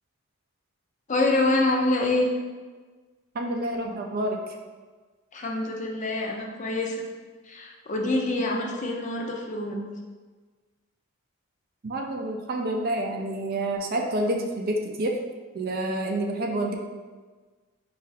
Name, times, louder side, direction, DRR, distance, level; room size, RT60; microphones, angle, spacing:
voice 1, 1.1-2.3 5.3-7.0 7.5-9.8, left 2 dB, 35° left, 0 dB, 0.6 m, -26 dB
voice 2, 3.3-4.6 11.8-15.1 15.5-16.8, right 1 dB, 45° right, 2 dB, 0.5 m, -28 dB
5.3 x 2.5 x 4.0 m, 1.4 s
head